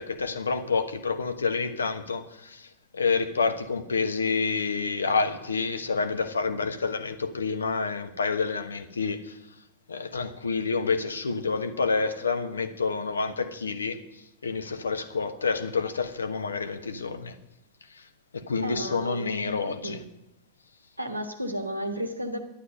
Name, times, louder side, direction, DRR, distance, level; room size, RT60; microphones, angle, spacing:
voice 1, 0.0-2.7 2.9-9.4 9.9-14.0 14.4-17.4 17.9-18.0 18.3-20.0, left 4 dB, 75° left, 1.2 m, -28 dB
voice 2, 18.6-20.1 21.0-22.4, equal, 85° right, 1.5 m, -33 dB
11.5 x 11.0 x 7.8 m
figure-of-eight pair, 90°, 0 cm